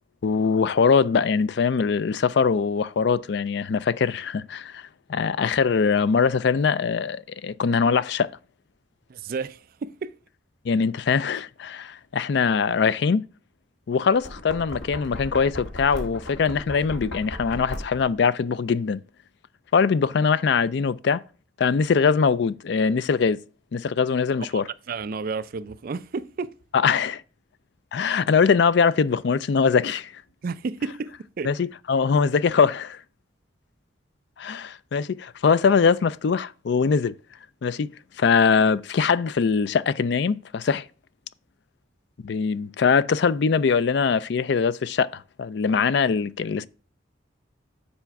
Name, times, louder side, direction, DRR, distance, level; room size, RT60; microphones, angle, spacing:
voice 1, 0.2-8.3 10.6-13.2 13.9-19.0 19.7-21.2 21.6-23.4 23.7-24.6 26.7-27.2 27.9-30.2 31.4-33.0 34.4-37.1 37.6-37.9 38.2-40.9 42.2-46.7, left 5 dB, 65° left, 0.4 m, -22 dB
voice 2, 9.1-10.1 24.5-24.6 24.9-26.5 30.4-31.5, right 4 dB, 50° right, 0.4 m, -31 dB
Knock, 14.1-18.2, left 1 dB, 90° left, 1.8 m, -37 dB
6.9 x 4.4 x 5.8 m
head